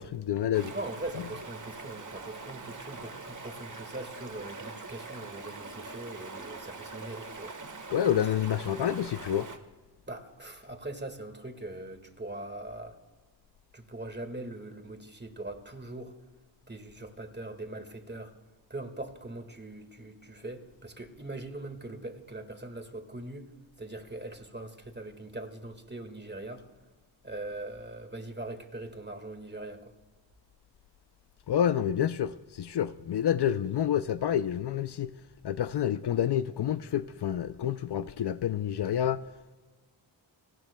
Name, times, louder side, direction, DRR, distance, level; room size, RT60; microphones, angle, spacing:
voice 1, 0.0-0.7 7.9-9.5 31.5-35.1 35.4-39.2, left 10 dB, 60° left, 0.5 m, -28 dB
Stream, 0.5-9.6, right 3 dB, 40° right, 1.4 m, -43 dB
voice 2, 0.7-7.6 10.1-13.0 13.7-16.1 16.7-18.3 18.7-23.5 23.8-26.7 27.2-29.9, right 2 dB, 25° right, 1.8 m, -41 dB
29.5 x 19.0 x 2.2 m
cardioid pair, 60°, 45 cm